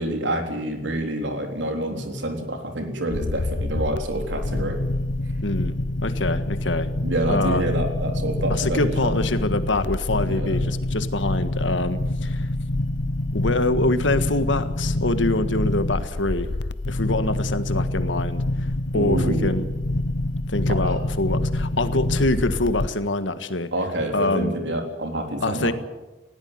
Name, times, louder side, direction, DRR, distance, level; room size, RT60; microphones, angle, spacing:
voice 1, 0.0-4.8 7.0-9.2 10.2-10.6 18.9-19.5 20.7-21.1 23.7-25.7, right 1 dB, 80° right, 4 dB, 3.7 m, -27 dB
sound 1, 3.1-22.9, left 1 dB, 70° left, 0.8 m, -26 dB
voice 2, 5.4-5.7 6.0-6.9 7.3-7.6 8.5-12.5 13.3-16.5 16.9-18.7 18.9-19.7 20.5-23.7 24.1-24.5 25.4-25.7, left 2 dB, 90° left, 11 dB, 1.7 m, -25 dB
20.0 x 17.0 x 9.7 m, 1.0 s
head